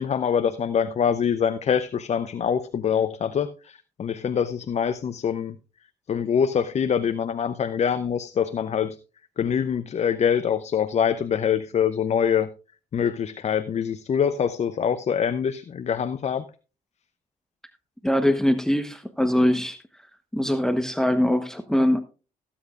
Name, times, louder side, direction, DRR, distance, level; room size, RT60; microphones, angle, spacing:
voice 1, 0.0-5.6 6.1-9.0 9.4-12.5 12.9-16.5, left 7 dB, 45° left, 12 dB, 0.7 m, -24 dB
voice 2, 18.0-19.8 20.3-22.0, left 1 dB, 5° left, 9 dB, 1.1 m, -22 dB
17.5 x 8.7 x 2.5 m, 0.34 s
hypercardioid pair, 55°, 16 cm